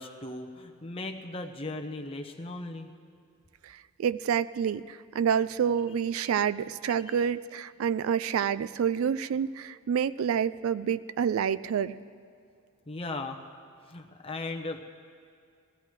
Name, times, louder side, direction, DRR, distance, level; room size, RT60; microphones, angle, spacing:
voice 1, 0.0-2.9 7.1-7.2 12.9-13.4 13.9-14.8, left 2 dB, 25° left, 3 dB, 0.8 m, -37 dB
voice 2, 3.6-12.0, right 8 dB, 70° right, 15 dB, 0.3 m, -28 dB
21.5 x 15.5 x 3.2 m, 2.3 s
head